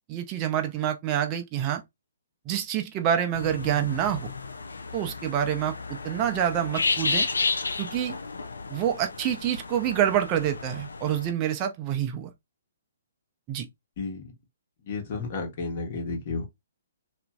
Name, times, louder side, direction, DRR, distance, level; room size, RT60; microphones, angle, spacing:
voice 1, 0.1-1.8 2.5-4.3 4.9-7.3 7.8-8.1 8.7-12.3 13.5-13.7, right 10 dB, 30° right, 0.5 m, -27 dB
sound 1, 3.3-11.3, left 3 dB, 80° left, 0.4 m, -32 dB
voice 2, 14.0-14.3 14.8-16.4, left 4 dB, 45° left, 1.1 m, -32 dB
2.9 x 2.5 x 2.3 m
figure-of-eight pair, 130°, 0 cm